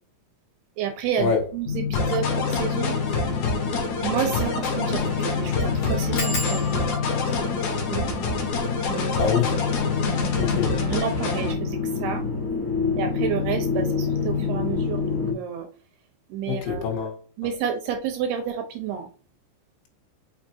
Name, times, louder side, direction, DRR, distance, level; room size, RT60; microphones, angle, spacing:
voice 1, 0.8-3.0 4.0-6.8 7.4-8.1 8.9-9.3 10.8-12.3 13.0-15.7 16.3-17.1 17.4-19.1, right 8 dB, 75° right, 2.5 m, -30 dB
sound 1, 1.6-15.3, left 6 dB, 10° left, 1.2 m, -27 dB
sound 2, 1.9-11.5, left 2 dB, 60° left, 3.0 m, -28 dB
sound 3, 3.0-3.2 3.6-3.7 3.9-4.0 4.6-4.8 5.1-5.2 6.2-11.4 12.1-12.6 12.9-13.3 13.5-13.6, left 2 dB, 40° left, 2.6 m, -38 dB
voice 2, 9.2-9.6 10.4-10.7 16.5-17.2, left 6 dB, 85° left, 3.9 m, -24 dB
6.5 x 5.7 x 2.6 m
omnidirectional pair, 5.3 m